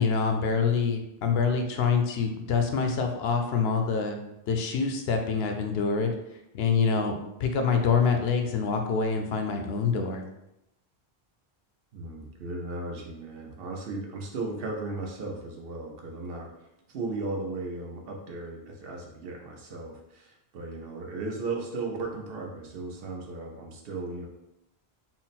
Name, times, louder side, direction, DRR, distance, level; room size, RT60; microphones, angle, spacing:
voice 1, 0.0-4.2 4.5-6.1 6.5-10.2, left 5 dB, 75° left, 5 dB, 0.8 m, -26 dB
voice 2, 11.9-24.3, right 3 dB, 70° right, 1 dB, 0.9 m, -36 dB
3.9 x 2.0 x 4.1 m, 0.85 s
omnidirectional pair, 1.1 m